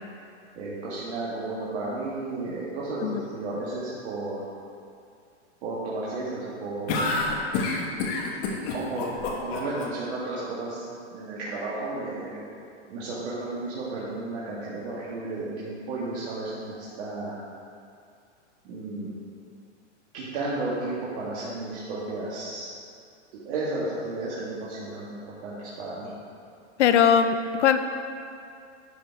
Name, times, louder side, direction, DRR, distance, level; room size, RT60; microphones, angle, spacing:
voice 1, 0.5-4.4 5.6-7.0 8.7-10.8 11.1-12.4 12.9-17.4 18.6-19.1 20.1-22.7 23.5-26.1, right 2 dB, 65° right, -8 dB, 1.9 m, -33 dB
sound 1, 6.9-9.9, left 3 dB, 55° left, 1.4 m, -27 dB
voice 2, 26.8-27.8, left 8 dB, 75° left, 8 dB, 0.6 m, -20 dB
11.0 x 4.2 x 4.7 m, 2.4 s
hypercardioid pair, 125°, 36 cm